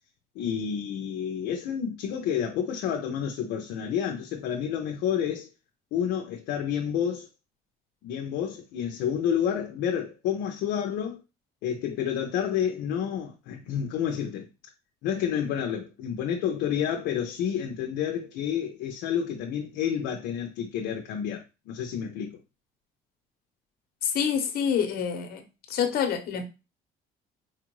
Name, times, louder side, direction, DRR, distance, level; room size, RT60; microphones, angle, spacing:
voice 1, 0.4-5.5 5.9-7.3 8.0-11.2 11.6-14.5 15.0-22.4, left 8 dB, 85° left, 0.6 m, -29 dB
voice 2, 24.0-25.4 25.7-26.4, left 8 dB, 65° left, 1.0 m, -27 dB
4.5 x 2.5 x 3.0 m
cardioid pair, 110°, 17 cm